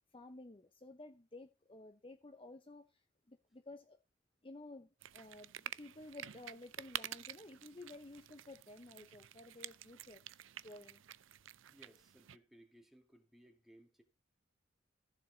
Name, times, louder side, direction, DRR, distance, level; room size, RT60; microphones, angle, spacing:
voice 1, 0.1-4.0 4.4-5.5 5.8-10.2 10.6-11.0, left 2 dB, 25° left, 0.9 m, -53 dB
sound 1, 5.0-12.4, right 11 dB, 80° right, 0.5 m, -49 dB
voice 2, 11.7-14.0, right 1 dB, ahead, 2.4 m, -63 dB
15.0 x 7.4 x 4.1 m
head